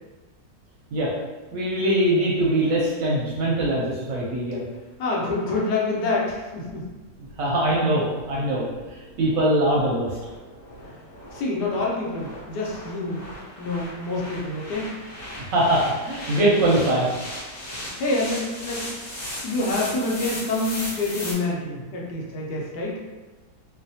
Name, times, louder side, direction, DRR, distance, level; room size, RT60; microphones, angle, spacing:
voice 1, 1.5-4.6 7.4-8.7 9.2-10.2 15.5-17.1, right 1 dB, 70° right, -5 dB, 0.9 m, -22 dB
voice 2, 5.0-6.9 10.8-11.0 11.3-13.3 13.6-14.9 17.6-18.9 19.4-23.0, left 2 dB, 80° left, -3 dB, 1.2 m, -27 dB
sound 1, 6.3-21.3, left 1 dB, 60° left, 1.2 m, -38 dB
3.1 x 2.0 x 2.6 m, 1.2 s
omnidirectional pair, 1.8 m